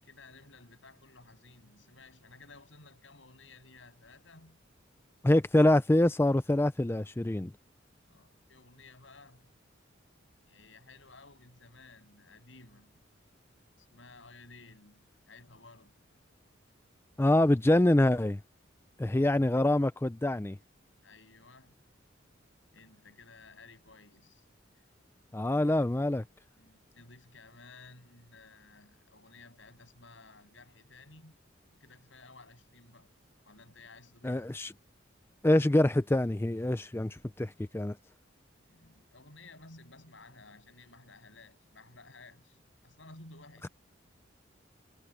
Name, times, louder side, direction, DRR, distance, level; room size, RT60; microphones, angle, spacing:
voice 1, 0.0-4.6 8.1-9.5 10.5-13.0 13.8-15.9 21.0-21.8 22.7-24.4 25.5-26.0 26.5-31.4 31.7-33.1 33.4-34.5 38.7-42.6 42.8-43.7, left 3 dB, 75° left, 7.9 m, -55 dB
voice 2, 5.2-7.5 17.2-18.4 19.0-20.6 25.3-26.2 34.2-34.7 35.4-38.0, left 1 dB, 10° left, 0.4 m, -25 dB
head